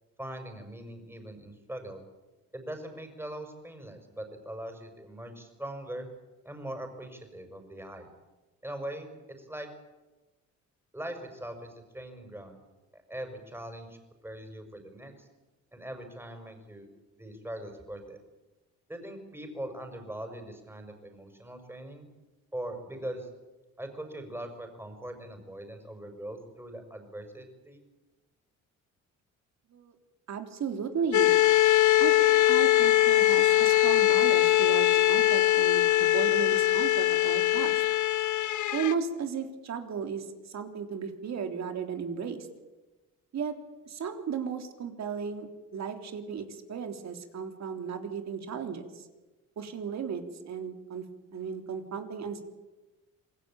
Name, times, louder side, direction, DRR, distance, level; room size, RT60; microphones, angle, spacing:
voice 1, 0.2-2.0 2.5-6.1 6.4-8.1 8.6-9.1 9.4-9.7 10.9-12.6 12.9-14.0 14.2-15.3 15.7-16.9 17.1-18.2 18.9-22.1 22.5-23.3 23.8-27.8, right 1 dB, 10° right, 5 dB, 6.2 m, -41 dB
voice 2, 30.3-31.3 32.0-37.8 38.7-42.5 43.3-43.5 43.9-45.5 45.7-49.0 49.6-51.0 51.3-52.4, right 6 dB, 60° right, 5 dB, 3.5 m, -35 dB
sound 1, 31.1-38.9, left 14 dB, 75° left, 1.5 m, -22 dB
27.0 x 19.5 x 8.9 m, 1.1 s
cardioid pair, 90°, 30 cm